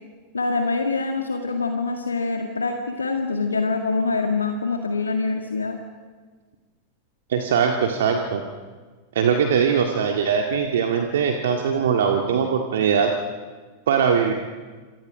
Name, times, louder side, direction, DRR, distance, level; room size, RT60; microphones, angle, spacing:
voice 1, 0.3-5.8, left 3 dB, 75° left, 4 dB, 1.8 m, -25 dB
voice 2, 7.3-8.5 9.2-13.1 13.9-14.3, right 7 dB, 60° right, 3 dB, 1.9 m, -21 dB
27.0 x 27.0 x 5.1 m, 1.4 s
figure-of-eight pair, 90°, 0 cm